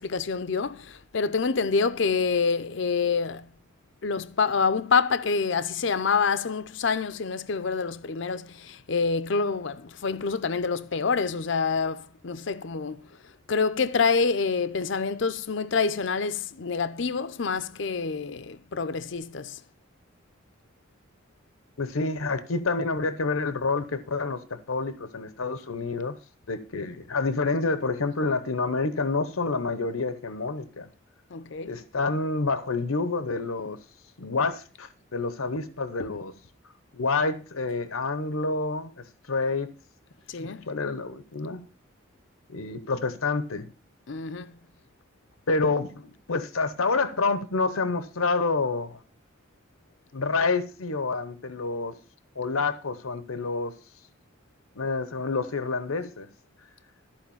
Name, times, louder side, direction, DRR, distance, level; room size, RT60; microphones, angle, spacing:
voice 1, 0.0-3.5 4.0-13.1 13.5-19.6 31.3-31.8 36.0-36.1 40.3-40.7 44.1-44.6, left 5 dB, 60° left, 0.6 m, -27 dB
voice 2, 21.8-26.2 26.5-30.9 31.6-33.8 34.2-36.3 36.6-39.7 40.4-41.6 42.5-43.7 45.5-49.0 50.1-52.0 52.4-53.8 54.8-56.3, left 3 dB, 90° left, 0.9 m, -28 dB
14.0 x 4.9 x 7.1 m
head